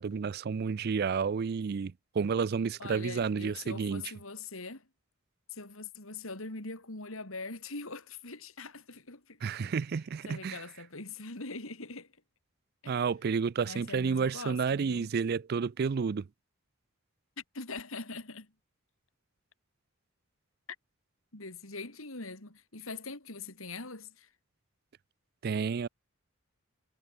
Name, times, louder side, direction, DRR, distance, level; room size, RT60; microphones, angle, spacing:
voice 1, 0.0-4.1 9.4-10.6 12.9-16.3 25.4-25.9, right 5 dB, 45° right, 0.4 m, -31 dB
voice 2, 2.8-4.9 5.5-9.7 10.3-12.1 12.8-13.0 13.7-15.1 17.4-18.5 21.3-24.3, left 3 dB, 75° left, 3.9 m, -42 dB
head